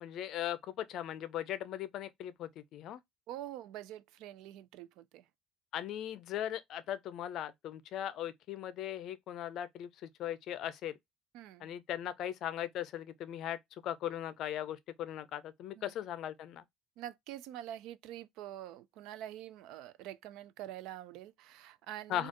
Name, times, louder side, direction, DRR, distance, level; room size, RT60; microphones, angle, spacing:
voice 1, 0.0-3.0 5.7-10.9 11.6-16.6 22.1-22.3, left 11 dB, 50° left, 0.5 m, -39 dB
voice 2, 3.3-5.3 11.3-11.7 15.8-15.9 17.0-22.3, right 12 dB, 65° right, 0.4 m, -46 dB
4.2 x 2.4 x 2.9 m
cardioid pair, 160°, 0 cm